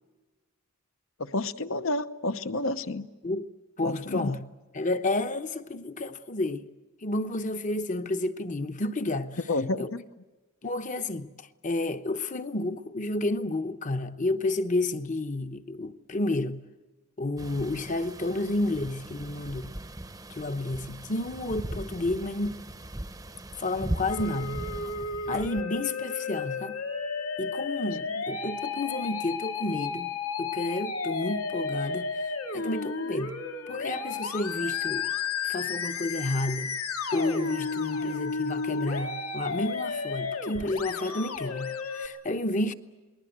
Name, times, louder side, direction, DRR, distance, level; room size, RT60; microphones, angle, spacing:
voice 1, 1.2-3.1 3.8-4.4 9.5-10.0, left 2 dB, 65° left, 0.9 m, -30 dB
voice 2, 3.8-4.4 4.7-6.6 7.0-9.4 9.8-9.9 10.6-16.6 17.2-19.7 20.3-22.6 23.6-24.6 25.3-26.8 27.4-30.1 30.4-33.4 33.7-35.1 35.4-36.8 37.1-42.7, left 2 dB, 35° left, 0.9 m, -31 dB
sound 1, 17.4-25.6, right 1 dB, 15° right, 0.8 m, -39 dB
Musical instrument, 24.1-42.1, left 4 dB, 80° left, 2.7 m, -33 dB
28.5 x 20.5 x 8.0 m
head